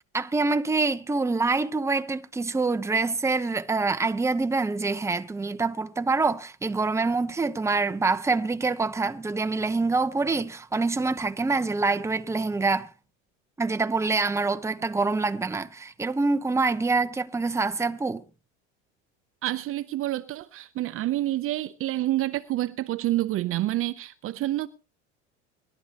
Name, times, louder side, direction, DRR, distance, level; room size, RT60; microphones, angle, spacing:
voice 1, 0.1-12.9 13.6-18.2, right 3 dB, 10° right, 0.9 m, -26 dB
voice 2, 19.4-24.7, right 15 dB, 40° right, 0.7 m, -28 dB
24.0 x 12.0 x 3.0 m
supercardioid pair, 115°, 33 cm